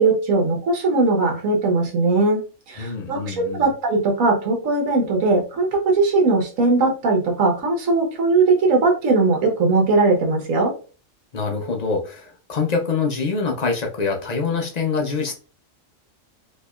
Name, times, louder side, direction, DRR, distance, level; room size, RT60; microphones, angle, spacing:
voice 1, 0.0-10.7, right 3 dB, 85° right, 2 dB, 1.4 m, -19 dB
voice 2, 2.8-3.6 11.3-15.3, left 4 dB, 55° left, 2 dB, 0.4 m, -25 dB
4.2 x 2.8 x 2.3 m, 0.37 s
omnidirectional pair, 1.4 m